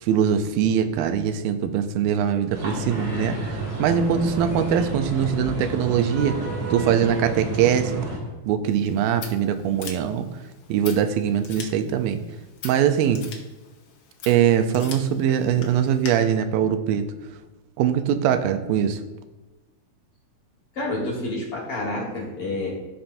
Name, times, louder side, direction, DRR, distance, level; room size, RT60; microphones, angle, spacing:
voice 1, 0.0-6.4 6.7-8.1 8.5-10.3 10.7-12.2 12.6-13.2 14.3-17.1 17.8-19.0, right 9 dB, 85° right, 8 dB, 2.3 m, -22 dB
sound 1, 2.5-8.2, right 1 dB, 55° right, 4.1 m, -31 dB
Scissors, 8.7-16.1, left 6 dB, 75° left, 1.3 m, -43 dB
voice 2, 20.7-22.7, left 2 dB, 50° left, -3 dB, 2.1 m, -28 dB
15.0 x 5.8 x 2.6 m, 1.1 s
omnidirectional pair, 4.1 m